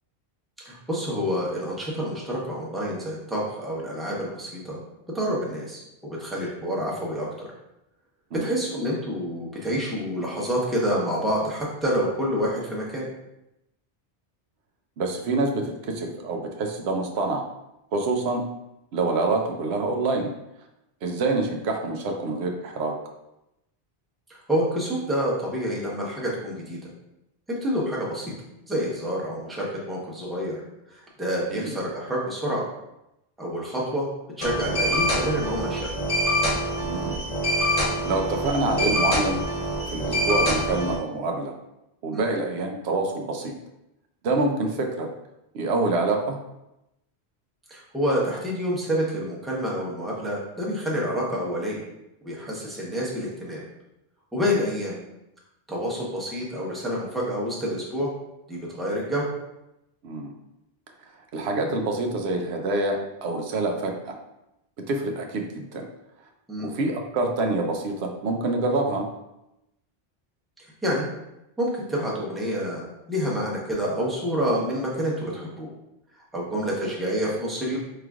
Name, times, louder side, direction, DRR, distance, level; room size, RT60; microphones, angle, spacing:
voice 1, 0.6-4.8 5.1-5.8 6.2-7.5 8.3-13.1 24.3-26.9 27.6-28.3 28.7-30.6 30.9-32.6 33.4-34.1 34.4-35.9 42.1-42.3 47.7-51.8 52.2-53.6 54.3-55.0 55.7-58.1 58.5-59.3 66.5-66.7 70.8-71.1 71.6-72.8 73.1-75.7 76.3-77.8, equal, ahead, -5 dB, 0.8 m, -28 dB
voice 2, 15.0-17.4 17.9-18.4 18.9-20.3 21.0-22.9 31.5-31.7 36.8-37.2 38.1-39.4 39.9-41.5 42.0-43.5 44.2-45.1 45.5-46.4 60.0-60.3 61.3-64.2 64.8-65.9 66.6-69.1, right 2 dB, 90° right, 3 dB, 0.9 m, -26 dB
sound 1, 34.4-40.9, equal, 35° left, 0.9 m, -25 dB
4.9 x 3.2 x 2.4 m, 0.88 s
omnidirectional pair, 1.1 m